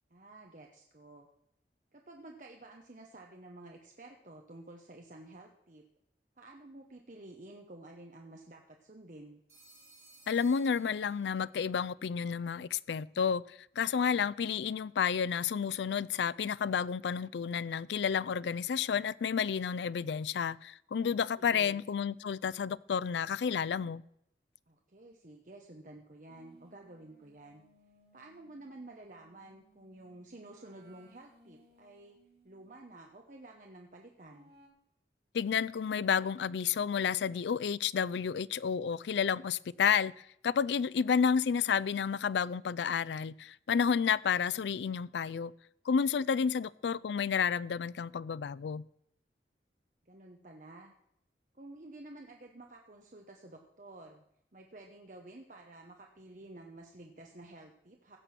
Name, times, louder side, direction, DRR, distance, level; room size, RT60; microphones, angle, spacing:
voice 1, 0.1-1.3 1.9-5.9 6.4-9.4 21.1-21.8 24.7-27.6 28.1-32.2 32.4-34.5 50.0-50.9 51.5-54.2 54.5-58.2, right 2 dB, 45° right, 1.0 m, -51 dB
Telephone, 9.5-11.6, right 2 dB, 15° right, 4.4 m, -59 dB
voice 2, 10.3-24.0 35.3-45.5 45.9-48.8, left 7 dB, 85° left, 0.4 m, -31 dB
sound 1, 26.3-32.9 34.3-34.7, right 2 dB, 65° right, 2.8 m, -65 dB
16.0 x 6.8 x 5.9 m
head